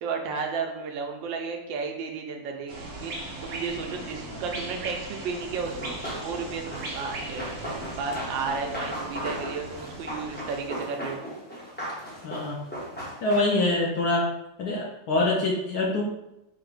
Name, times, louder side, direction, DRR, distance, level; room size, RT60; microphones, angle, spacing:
voice 1, 0.0-2.7 3.0-7.5 8.0-11.2, right 5 dB, 75° right, 2 dB, 1.3 m, -33 dB
sound 1, 2.7-10.7, right 2 dB, 55° right, 1.1 m, -38 dB
Run, 5.6-13.8, equal, 10° left, 0.5 m, -37 dB
voice 2, 12.2-12.6 13.2-14.2 14.6-16.0, left 2 dB, 65° left, -2 dB, 1.0 m, -25 dB
4.8 x 2.1 x 4.7 m, 0.89 s
omnidirectional pair, 2.2 m